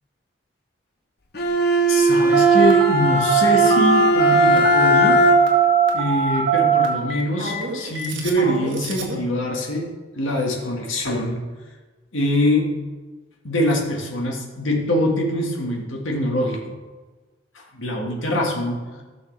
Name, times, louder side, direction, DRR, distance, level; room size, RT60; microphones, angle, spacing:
Bowed string instrument, 1.3-5.7, equal, 50° left, 0.8 m, -18 dB
voice 1, 1.9-5.2 5.9-11.4 12.1-12.8 13.4-16.6 17.7-18.8, left 1 dB, 85° left, -1 dB, 1.8 m, -23 dB
Telephone, 2.3-9.2, right 7 dB, 70° right, 1.7 m, -20 dB
15.5 x 6.4 x 3.4 m, 1.3 s
head